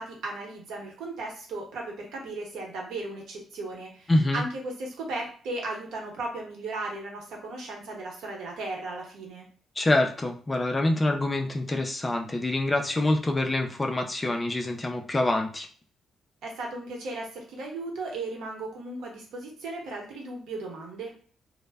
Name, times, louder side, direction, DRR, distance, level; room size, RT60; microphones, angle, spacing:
voice 1, 0.0-9.5 16.4-21.1, right 2 dB, 90° right, 0 dB, 0.8 m, -36 dB
voice 2, 4.1-4.4 9.8-15.7, left 1 dB, 20° left, 3 dB, 0.3 m, -26 dB
2.0 x 2.0 x 3.3 m, 0.44 s
cardioid pair, 145°, 0 cm